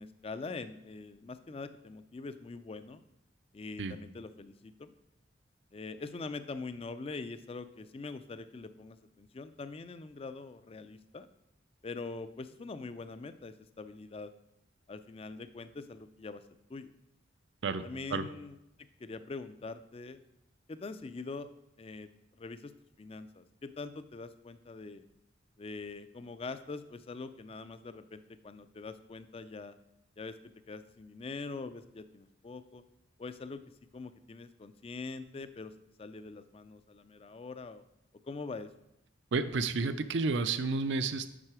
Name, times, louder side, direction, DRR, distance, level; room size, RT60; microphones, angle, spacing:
voice 1, 0.0-3.0 3.5-4.9 5.7-11.3 11.8-14.3 14.9-16.4 16.7-16.9 17.8-20.2 20.7-21.5 21.8-22.7 23.0-25.0 25.6-29.7 30.2-32.8 33.2-33.6 33.9-35.7 36.0-37.8 38.3-38.7, left 3 dB, 30° left, 12 dB, 0.3 m, -43 dB
voice 2, 39.3-41.3, right 4 dB, 65° right, 13 dB, 0.5 m, -31 dB
7.5 x 5.7 x 4.8 m, 0.85 s
head